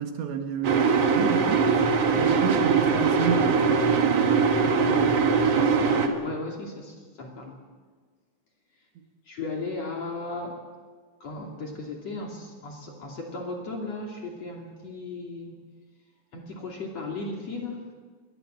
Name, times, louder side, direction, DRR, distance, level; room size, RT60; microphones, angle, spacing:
voice 1, 0.0-6.2, right 8 dB, 75° right, 5 dB, 3.8 m, -32 dB
sound 1, 0.6-6.1, right 5 dB, 60° right, 1.7 m, -22 dB
voice 2, 6.2-7.6 9.3-10.6 11.2-15.6 16.3-17.9, left 3 dB, 40° left, 0 dB, 3.3 m, -36 dB
22.0 x 19.0 x 7.6 m, 1.4 s
omnidirectional pair, 5.2 m